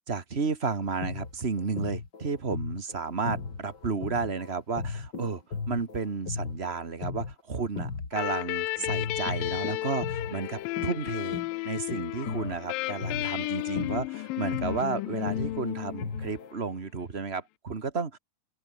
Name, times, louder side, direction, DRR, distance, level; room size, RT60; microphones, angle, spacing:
voice 1, 0.1-18.2, right 4 dB, 30° right, 1.2 m, -32 dB
sound 1, 0.8-8.5 8.9-16.5, left 4 dB, 30° left, 3.2 m, -37 dB
sound 2, 8.1-16.6, left 21 dB, 85° left, 2.3 m, -33 dB
open air
omnidirectional pair, 3.9 m